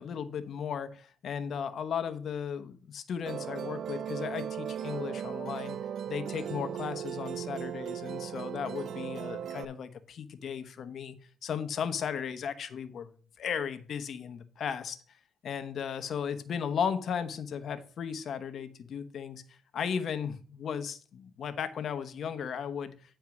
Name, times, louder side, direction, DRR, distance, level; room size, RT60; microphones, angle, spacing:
voice 1, 0.0-5.8 6.1-11.1 11.4-13.1 13.4-15.0 15.4-22.9, left 7 dB, 60° left, 1.0 m, -35 dB
Musical instrument, 3.3-9.7, right 9 dB, 70° right, 0.4 m, -37 dB
9.2 x 4.6 x 6.0 m
cardioid pair, 90°, 0 cm